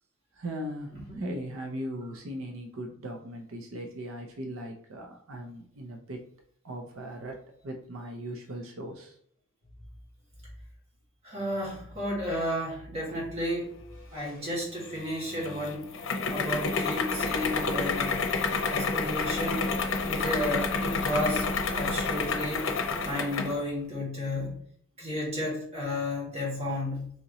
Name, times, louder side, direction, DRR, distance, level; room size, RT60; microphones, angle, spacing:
voice 1, 0.3-6.2 6.6-7.4 7.6-9.2 14.1-14.5, right 1 dB, 80° right, 2 dB, 0.6 m, -38 dB
voice 2, 11.2-13.8 14.1-15.9 16.3-18.2 18.7-19.7 20.1-22.7 23.0-24.5 25.0-27.1, left 1 dB, 30° right, -4 dB, 1.8 m, -32 dB
sound 1, 14.8-23.6, left 4 dB, 65° left, 0.7 m, -29 dB
4.3 x 2.9 x 3.8 m, 0.63 s
head